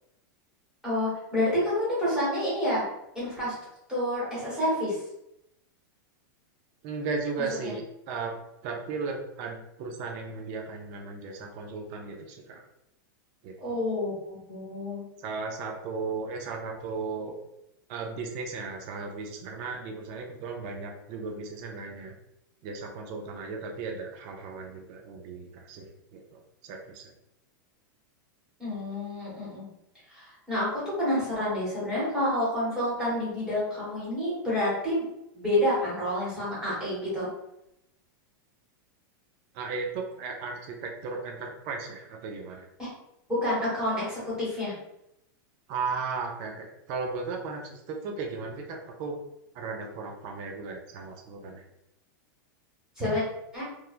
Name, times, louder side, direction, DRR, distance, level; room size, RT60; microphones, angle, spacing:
voice 1, 0.8-2.8 3.1-3.5 3.9-5.0 13.6-15.0 28.6-29.6 30.1-35.0 35.3-37.3 42.8-42.9 43.3-44.7 53.0-53.2 53.5-53.6, left 1 dB, 5° right, -9 dB, 1.3 m, -28 dB
voice 2, 6.8-8.3 8.6-12.6 13.4-13.8 15.2-17.4 17.9-22.1 22.6-27.1 39.5-42.7 45.7-49.2 49.5-51.6, right 4 dB, 35° right, 1 dB, 0.4 m, -36 dB
3.0 x 2.3 x 2.4 m, 0.82 s
supercardioid pair, 165°, 11 cm